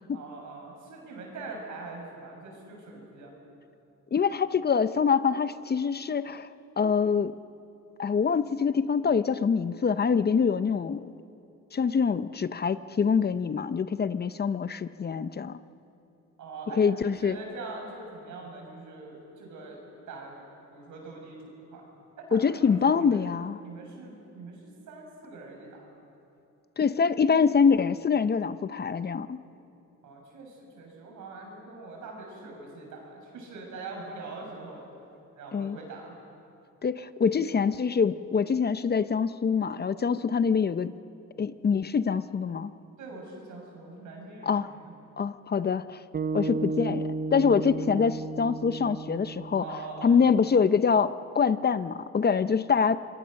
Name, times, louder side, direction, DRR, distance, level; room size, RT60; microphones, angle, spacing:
voice 1, 0.1-3.3 16.4-20.5 20.7-21.9 22.2-23.3 23.6-25.9 30.0-34.8 35.4-36.2 43.0-44.9 49.6-50.2, right 3 dB, 80° right, 0 dB, 7.0 m, -43 dB
voice 2, 4.1-6.5 6.8-7.3 8.0-11.1 11.7-15.6 16.8-17.4 22.3-23.6 26.8-29.4 35.5-35.8 36.8-40.9 41.4-42.7 44.4-44.7 45.2-46.0 46.3-53.0, left 6 dB, 35° left, 13 dB, 0.7 m, -25 dB
sound 1, 46.1-50.5, right 3 dB, 30° right, 0.7 m, -33 dB
26.5 x 21.5 x 6.5 m, 2.7 s
cardioid pair, 90°, 30 cm